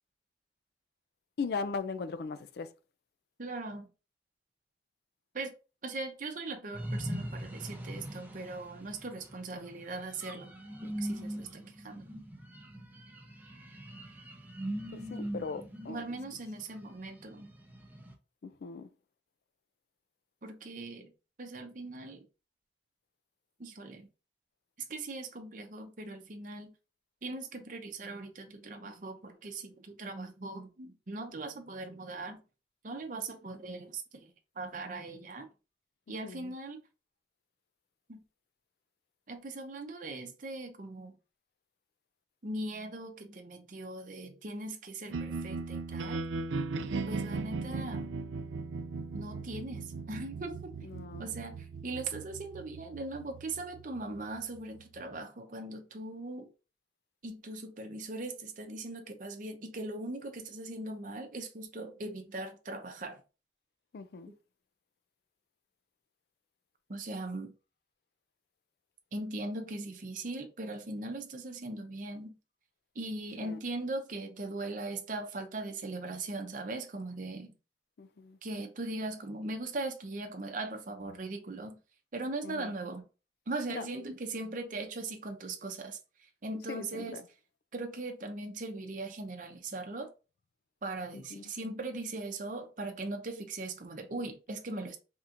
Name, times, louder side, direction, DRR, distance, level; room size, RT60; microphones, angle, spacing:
voice 1, 1.4-2.7 14.9-16.1 18.4-18.9 36.2-36.5 46.8-47.2 50.8-51.3 63.9-64.3 73.4-73.6 78.0-78.4 82.4-82.7 83.7-83.9 86.7-87.2 91.1-91.4, left 4 dB, 60° left, 0.4 m, -39 dB
voice 2, 3.4-3.9 5.3-5.5 5.8-10.5 10.8-12.1 15.9-17.5 20.4-21.1 21.4-22.2 23.6-24.1 24.9-26.7 27.2-32.4 32.8-34.3 34.6-35.5 36.1-36.8 38.1-38.2 39.3-41.2 42.4-46.2 47.1-48.1 49.1-50.7 51.2-56.5 57.2-63.2 66.9-67.5 69.1-72.4 72.9-77.5 78.4-81.8 82.1-83.1 83.5-86.0 86.4-87.2 87.7-90.1 90.8-95.0, right 2 dB, 45° right, 0.7 m, -40 dB
sound 1, 6.7-18.1, equal, 10° right, 0.6 m, -41 dB
sound 2, 45.1-55.2, right 4 dB, 90° right, 0.4 m, -38 dB
4.3 x 3.5 x 2.5 m
head